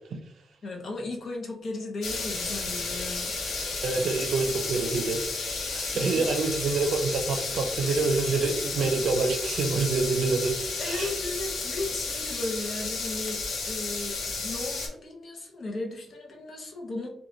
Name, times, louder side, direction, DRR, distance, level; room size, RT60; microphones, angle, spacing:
voice 1, 0.6-3.6 5.9-6.3 10.8-17.1, left 2 dB, 45° left, 1 dB, 0.6 m, -36 dB
sound 1, 2.0-14.9, left 3 dB, 90° left, 0.7 m, -32 dB
voice 2, 3.8-5.2 5.7-10.6 10.8-11.1, right 4 dB, 75° right, 4 dB, 0.5 m, -27 dB
3.1 x 2.2 x 2.5 m, 0.73 s
wide cardioid pair, 165°, 0 cm